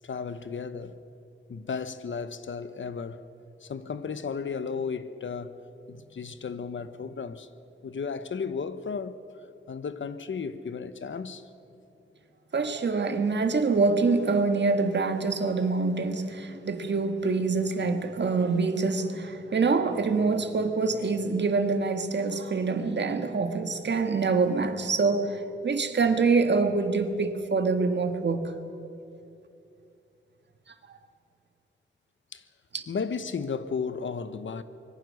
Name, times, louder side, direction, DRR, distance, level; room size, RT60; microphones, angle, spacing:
voice 1, 0.0-1.0 1.5-3.2 3.6-5.5 5.9-7.5 7.8-9.2 9.7-11.5 32.3-32.4 32.9-34.6, left 5 dB, 70° left, 1.0 m, -34 dB
voice 2, 12.5-28.5 32.7-32.8, right 4 dB, 60° right, 1.7 m, -25 dB
25.0 x 22.5 x 6.5 m
wide cardioid pair, 140°, 21 cm